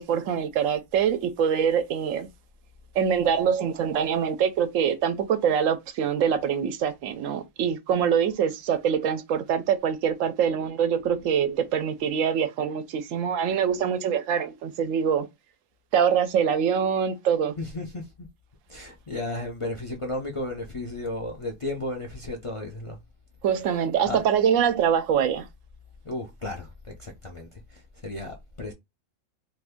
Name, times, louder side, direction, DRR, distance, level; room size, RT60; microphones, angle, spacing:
voice 1, 0.0-2.3 2.9-15.3 15.9-17.5 23.4-25.5, right 8 dB, 80° right, 0.9 m, -24 dB
voice 2, 17.6-18.1 18.7-23.0 23.6-23.7 24.0-24.2 26.0-27.5 28.0-28.7, left 2 dB, 40° left, 0.5 m, -34 dB
2.7 x 2.5 x 3.4 m
omnidirectional pair, 1.3 m